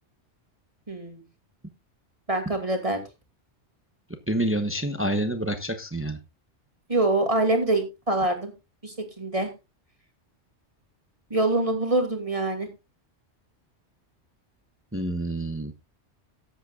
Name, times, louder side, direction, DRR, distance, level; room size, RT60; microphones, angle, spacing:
voice 1, 0.9-1.2 2.3-3.0 6.9-8.5 8.8-9.5 11.3-12.7, right 2 dB, 30° right, 5 dB, 2.5 m, -25 dB
voice 2, 4.3-6.2 14.9-15.7, right 1 dB, 10° right, 8 dB, 0.9 m, -27 dB
18.5 x 8.1 x 2.4 m, 0.25 s
omnidirectional pair, 1.2 m